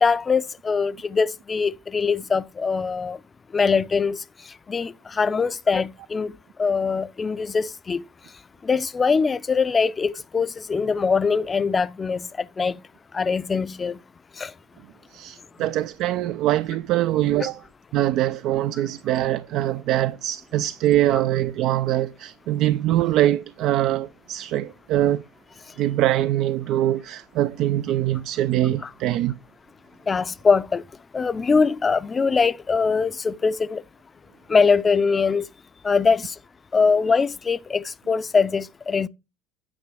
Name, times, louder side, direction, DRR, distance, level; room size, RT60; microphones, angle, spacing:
voice 1, 0.0-3.2 3.5-4.2 4.7-6.3 6.6-8.0 8.6-12.2 12.6-12.7 13.1-14.0 14.4-14.5 28.8-28.9 30.1-30.8 31.1-33.8 34.5-35.5 35.8-36.3 36.7-39.1, left 5 dB, 25° left, 0.5 m, -22 dB
voice 2, 15.1-17.6 17.9-25.2 25.8-29.3, right 13 dB, 60° right, 0.4 m, -23 dB
9.7 x 5.2 x 4.7 m
hypercardioid pair, 80°, 0 cm